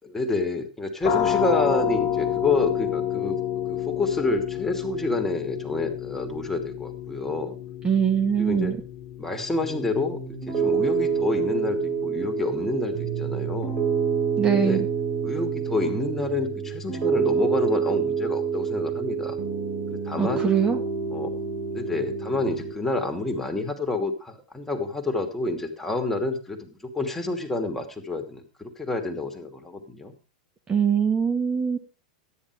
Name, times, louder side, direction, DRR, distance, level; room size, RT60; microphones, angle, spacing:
voice 1, 0.0-3.4 3.7-7.6 8.4-8.7 9.2-13.8 14.5-14.8 15.2-19.4 19.9-20.5 21.1-21.3 21.7-30.1, left 3 dB, 10° left, 4 dB, 2.9 m, -28 dB
sound 1, 1.0-12.5, left 9 dB, 40° left, 1.5 m, -30 dB
voice 2, 7.8-8.8 14.4-14.9 20.2-20.8 30.7-31.8, right 7 dB, 20° right, 4 dB, 2.2 m, -22 dB
Piano, 9.6-22.7, right 6 dB, 40° right, 5.0 m, -27 dB
13.5 x 10.5 x 4.9 m, 0.31 s
hypercardioid pair, 100°, 4 cm